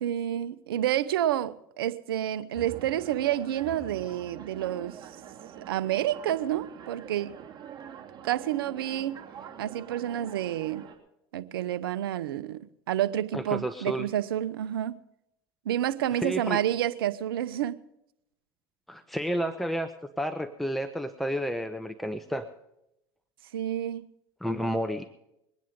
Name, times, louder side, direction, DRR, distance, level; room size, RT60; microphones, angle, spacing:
voice 1, 0.0-5.0 5.7-7.3 8.2-9.2 9.6-10.8 11.3-15.0 15.6-17.8 23.5-24.0, right 12 dB, 85° right, 0.7 m, -29 dB
sound 1, 2.5-11.0, right 9 dB, 40° right, 3.1 m, -45 dB
voice 2, 13.3-14.1 16.2-16.6 18.9-19.9 20.2-22.5 24.4-25.0, equal, ahead, 1.0 m, -31 dB
22.5 x 9.4 x 5.1 m
hypercardioid pair, 90°, 12 cm